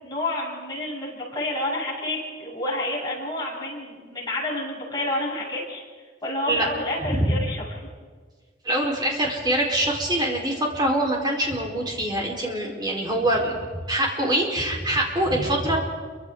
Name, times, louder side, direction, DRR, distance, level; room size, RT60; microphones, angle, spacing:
voice 1, 0.0-5.8 6.2-7.6, left 1 dB, 25° left, -5 dB, 8.0 m, -29 dB
voice 2, 8.6-13.6 13.9-15.8, right 1 dB, 25° right, -1 dB, 4.5 m, -24 dB
29.5 x 25.0 x 3.9 m, 1.5 s
head